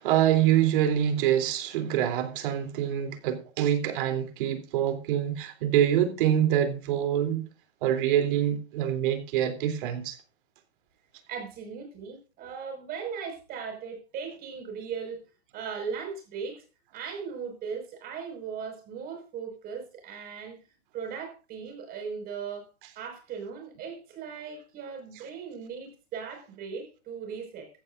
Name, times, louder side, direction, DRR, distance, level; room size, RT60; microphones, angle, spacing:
voice 1, 0.0-7.4 7.8-10.2, right 10 dB, 50° right, 3.3 m, -25 dB
voice 2, 11.3-15.2 15.5-16.6 16.9-20.6 20.9-22.7 23.0-27.7, right 6 dB, 25° right, 5.5 m, -38 dB
15.5 x 14.5 x 2.6 m
hypercardioid pair, 145°, 33 cm